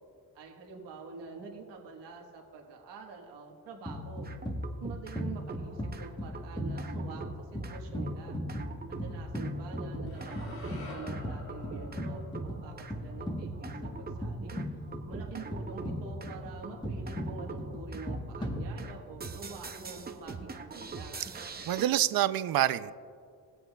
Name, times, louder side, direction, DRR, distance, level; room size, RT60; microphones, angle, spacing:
voice 1, 0.3-4.3 4.8-8.4 8.9-14.6 15.1-21.3, right 4 dB, 90° right, 0 dB, 1.4 m, -46 dB
sound 1, 3.8-19.2, equal, 10° left, 1.1 m, -38 dB
sound 2, 4.2-5.2 5.5-21.9, right 4 dB, 25° right, 0.7 m, -44 dB
sound 3, 10.1-14.3, left 2 dB, 60° left, 1.5 m, -49 dB
voice 2, 21.7-22.9, right 13 dB, 60° right, 14 dB, 0.5 m, -26 dB
20.5 x 7.7 x 2.3 m, 2.2 s
cardioid pair, 100°, 41 cm